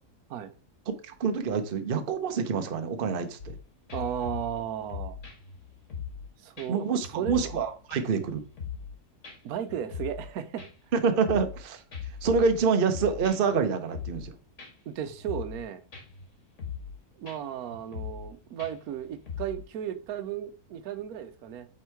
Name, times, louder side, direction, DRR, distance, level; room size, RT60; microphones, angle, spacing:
voice 1, 0.9-3.6 6.7-8.4 10.9-11.8 12.2-14.3, right 5 dB, 45° right, 0.8 m, -27 dB
sound 1, 3.4-3.6 3.9-6.3 6.6-6.7 7.0-7.6 7.9-8.9 9.2-9.4 9.7-10.3 10.6-11.6 11.9-13.6 13.9-14.3 14.6-14.7 15.0-15.6 15.9-16.3 16.6-17.0 17.3-17.4 17.7-18.3 18.6-19.6, left 7 dB, 50° left, 2.0 m, -39 dB
voice 2, 3.9-5.2 6.4-6.8 7.2-7.5 9.4-10.6 14.9-15.8 17.2-21.7, right 9 dB, 70° right, 1.2 m, -34 dB
8.0 x 3.6 x 4.5 m
omnidirectional pair, 1.7 m